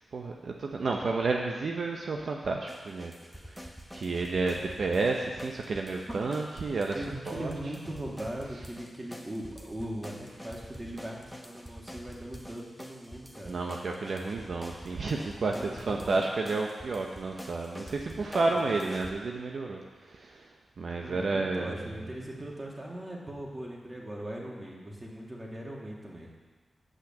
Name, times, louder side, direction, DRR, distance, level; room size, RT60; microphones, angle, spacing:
voice 1, 0.1-3.7 3.9-7.5 13.5-20.5 20.8-22.1, right 3 dB, 65° right, 1 dB, 0.8 m, -31 dB
sound 1, 2.7-19.1, equal, ahead, 1.2 m, -46 dB
voice 2, 6.9-13.6 15.5-16.2 18.2-18.6 21.0-26.3, right 1 dB, 25° right, -2 dB, 2.3 m, -40 dB
8.3 x 5.9 x 7.5 m, 1.3 s
cardioid pair, 60°, 0 cm